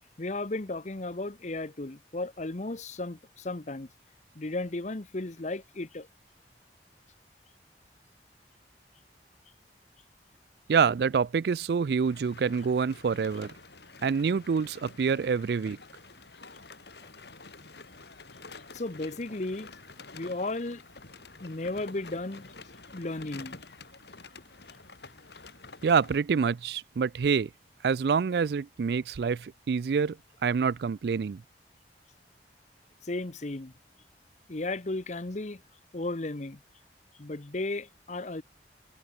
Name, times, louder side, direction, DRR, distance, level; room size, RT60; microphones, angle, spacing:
voice 1, 0.2-3.9 4.3-6.1 18.7-19.7 20.1-20.8 21.4-22.5 22.9-23.6 33.0-33.7 34.5-35.6 35.9-36.6 37.2-38.4, left 2 dB, 40° left, 1.0 m, -34 dB
voice 2, 10.7-13.5 14.0-15.8 25.8-27.5 27.8-30.2 30.4-31.4, right 6 dB, 60° right, 0.4 m, -26 dB
sound 1, 12.0-26.2, left 3 dB, 70° left, 2.8 m, -49 dB
head